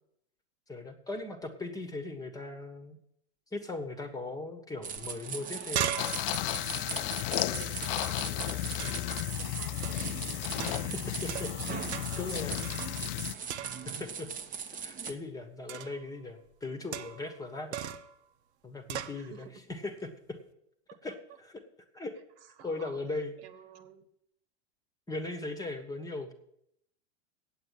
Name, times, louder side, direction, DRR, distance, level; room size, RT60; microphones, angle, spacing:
voice 1, 0.7-3.0 3.5-5.9 10.7-11.5 11.9-12.6 13.8-14.3 14.8-17.8 18.6-20.4 21.0-21.5 21.9-22.1 22.6-23.3 25.1-26.3, left 2 dB, 10° left, 6 dB, 1.3 m, -39 dB
sound 1, 4.8-15.1, right 6 dB, 25° right, 1.1 m, -40 dB
sound 2, 5.0-5.1 5.3-8.1 8.8-9.2 9.8-10.1 10.6-11.6 11.9-12.3 12.6-13.2 13.5-14.1 15.7-16.0 16.9-17.3 17.7-18.1 18.9-19.2, right 9 dB, 80° right, 0.9 m, -38 dB
sound 3, 6.0-13.3, left 16 dB, 55° left, 0.5 m, -34 dB
voice 2, 7.4-10.1 12.1-13.1 19.1-19.6 20.9-21.0 22.4-24.1, right 6 dB, 60° right, 9 dB, 1.6 m, -51 dB
8.6 x 8.0 x 8.3 m, 0.75 s
hypercardioid pair, 115°, 33 cm